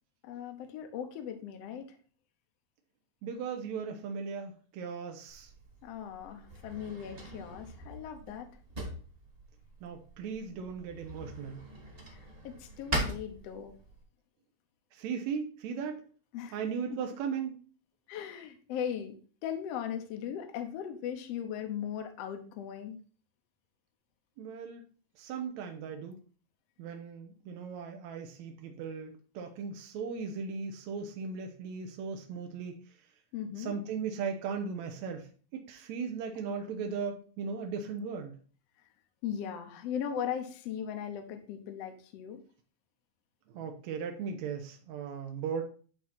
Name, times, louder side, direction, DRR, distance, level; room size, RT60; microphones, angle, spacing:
voice 1, 0.2-2.0 5.8-8.5 12.1-12.2 12.4-13.7 16.3-16.6 18.1-19.2 19.4-23.0 33.3-33.8 39.2-42.4, left 8 dB, 75° left, 5 dB, 1.5 m, -38 dB
voice 2, 3.2-5.5 9.8-11.6 14.9-16.1 16.5-17.6 24.4-24.8 25.2-26.2 26.8-32.8 33.6-38.4 43.5-45.6, right 6 dB, 75° right, 4 dB, 1.7 m, -37 dB
Drawer open or close, 5.3-14.0, right 1 dB, 25° right, 1.2 m, -41 dB
10.5 x 3.7 x 4.1 m, 0.41 s
omnidirectional pair, 4.0 m